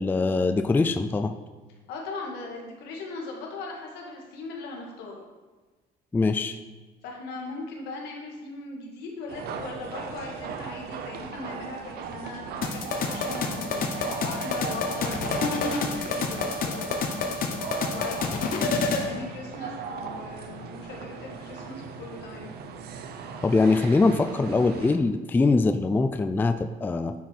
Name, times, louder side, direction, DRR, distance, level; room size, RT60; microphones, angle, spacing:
voice 1, 0.0-1.3 6.1-6.6 23.4-27.1, left 3 dB, 10° left, 9 dB, 0.3 m, -23 dB
voice 2, 1.9-5.2 7.0-17.3 17.9-22.5, left 3 dB, 85° left, 0 dB, 1.7 m, -39 dB
sound 1, 9.3-25.0, right 5 dB, 70° right, 0.8 m, -38 dB
sound 2, 12.6-19.1, left 4 dB, 60° left, 1.0 m, -28 dB
9.1 x 4.7 x 4.5 m, 1.3 s
cardioid pair, 110°, 17 cm